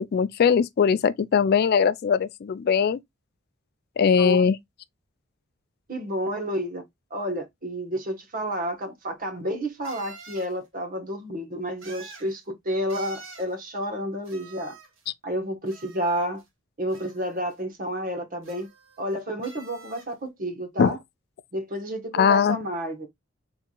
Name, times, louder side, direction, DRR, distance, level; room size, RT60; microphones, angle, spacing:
voice 1, 0.0-3.0 4.0-4.6 20.8-21.0 22.2-22.6, left 6 dB, 50° left, 0.3 m, -20 dB
voice 2, 5.9-6.8 7.1-14.8 15.2-16.4 16.8-18.7 19.0-21.0 21.5-23.1, equal, 45° right, 1.2 m, -30 dB
sound 1, 8.5-8.6 9.8-10.5 11.8-12.3 12.9-13.5 14.3-15.1 15.7-16.5 16.9-17.5 18.4-19.1 19.4-20.1, right 4 dB, 70° right, 1.7 m, -47 dB
4.5 x 3.5 x 2.3 m
head